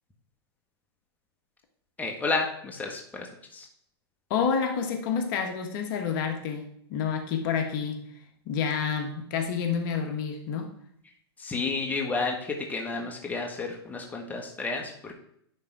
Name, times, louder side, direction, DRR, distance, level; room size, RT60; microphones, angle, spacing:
voice 1, 2.0-3.7 11.4-15.1, left 3 dB, 10° left, 0 dB, 1.4 m, -31 dB
voice 2, 4.3-8.0 8.4-10.7, left 6 dB, 50° left, 4 dB, 1.3 m, -29 dB
10.5 x 3.7 x 4.7 m, 0.68 s
hypercardioid pair, 125°, 14 cm